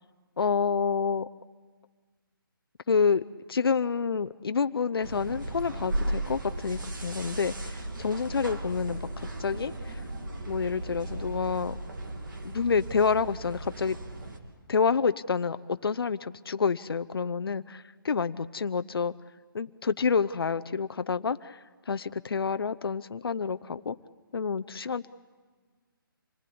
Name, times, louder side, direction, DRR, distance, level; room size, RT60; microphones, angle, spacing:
voice 1, 0.4-1.3 2.9-10.0 10.5-11.8 12.4-14.0 14.7-19.1 19.5-24.0 24.3-25.1, left 5 dB, 85° left, 12 dB, 0.7 m, -28 dB
sound 1, 5.0-14.4, right 1 dB, 60° right, 3.0 m, -36 dB
26.5 x 19.5 x 8.5 m, 1.5 s
hypercardioid pair, 175°, 12 cm